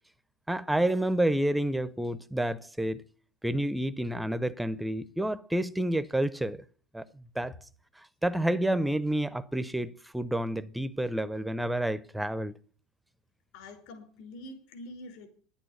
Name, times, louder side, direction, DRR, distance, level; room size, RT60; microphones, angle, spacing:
voice 1, 0.5-3.0 3.4-6.6 6.9-7.5 8.2-12.5, right 1 dB, 5° right, 0.6 m, -29 dB
voice 2, 13.5-15.3, left 1 dB, 65° left, 5.0 m, -45 dB
10.5 x 8.8 x 8.1 m
supercardioid pair, 150°, 0 cm